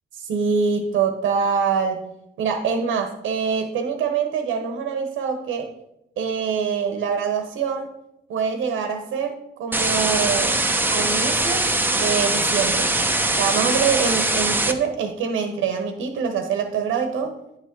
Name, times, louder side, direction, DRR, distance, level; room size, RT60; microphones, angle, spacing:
voice 1, 0.1-2.0 2.4-5.7 6.2-7.9 8.3-10.6 10.9-12.9 13.3-17.3, right 6 dB, 85° right, 6 dB, 1.2 m, -24 dB
sound 1, 9.7-14.7, right 2 dB, 10° right, 0.9 m, -22 dB
9.5 x 6.1 x 4.6 m, 0.84 s
cardioid pair, 90°, 20 cm